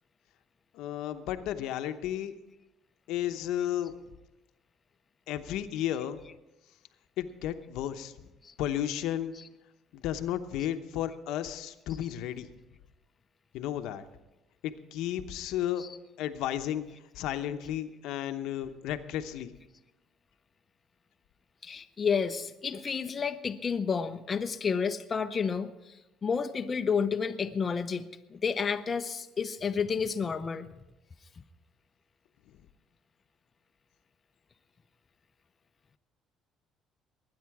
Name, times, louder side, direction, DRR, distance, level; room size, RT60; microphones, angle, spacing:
voice 1, 0.7-2.4 3.1-4.0 5.3-6.2 7.2-8.1 8.6-9.4 9.9-12.5 13.5-14.0 14.6-15.8 16.2-16.8 17.1-19.5, left 11 dB, 80° left, 8 dB, 0.9 m, -33 dB
voice 2, 21.6-28.0 28.3-30.7, left 6 dB, 30° left, 7 dB, 0.6 m, -31 dB
20.5 x 9.6 x 4.8 m, 0.99 s
cardioid pair, 120°, 0 cm